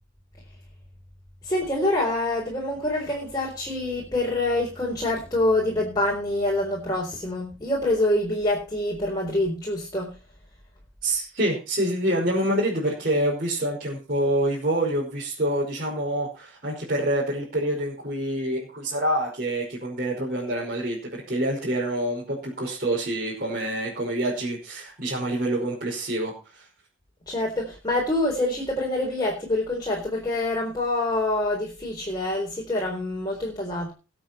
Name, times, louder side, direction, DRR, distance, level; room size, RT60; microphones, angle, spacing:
voice 1, 1.4-10.1 27.3-33.9, left 1 dB, 20° left, -2 dB, 4.1 m, -26 dB
voice 2, 11.0-26.7, right 1 dB, 45° right, -5 dB, 5.3 m, -26 dB
21.0 x 8.1 x 4.4 m, 0.32 s
head